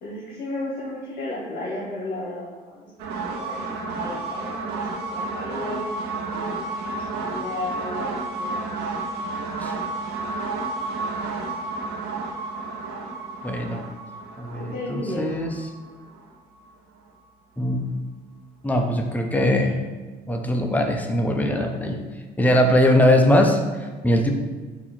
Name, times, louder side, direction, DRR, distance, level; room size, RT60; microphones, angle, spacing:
voice 1, 0.0-2.9 3.1-3.6 4.0-5.8 6.3-8.9 14.5-15.3, left 2 dB, 60° left, -5 dB, 1.1 m, -34 dB
sound 1, 3.0-16.6, right 3 dB, 90° right, 0.7 m, -31 dB
voice 2, 13.4-13.8 14.4-15.5 17.6-17.9 18.6-19.7 20.3-22.0 22.4-24.3, left 1 dB, 10° left, 2 dB, 0.6 m, -21 dB
4.3 x 2.9 x 4.1 m, 1.3 s
cardioid pair, 110°, 17 cm